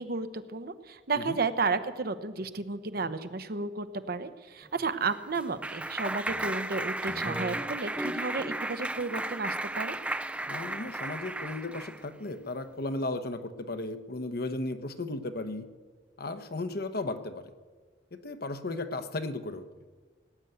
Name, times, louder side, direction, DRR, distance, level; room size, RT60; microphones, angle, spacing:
voice 1, 0.0-10.0, right 4 dB, 60° right, 10 dB, 0.9 m, -32 dB
Clapping, 4.8-12.0, right 1 dB, 5° right, 0.4 m, -34 dB
voice 2, 10.5-15.7 16.2-17.5 18.1-19.6, left 2 dB, 60° left, 9 dB, 1.0 m, -35 dB
18.0 x 9.1 x 8.0 m, 1.4 s
head